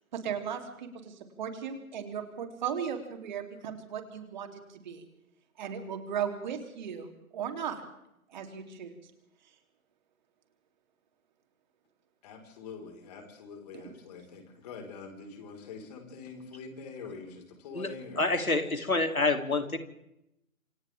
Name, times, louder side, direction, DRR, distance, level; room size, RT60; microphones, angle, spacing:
voice 1, 0.1-5.0 5.6-7.8 8.3-8.9 13.7-13.9, right 8 dB, 35° right, 5 dB, 3.5 m, -37 dB
voice 2, 12.2-18.3, left 5 dB, 30° left, 3 dB, 5.1 m, -45 dB
voice 3, 18.2-19.8, left 3 dB, 80° left, 6 dB, 3.5 m, -27 dB
28.0 x 26.0 x 3.7 m, 0.83 s
figure-of-eight pair, 140°, 42 cm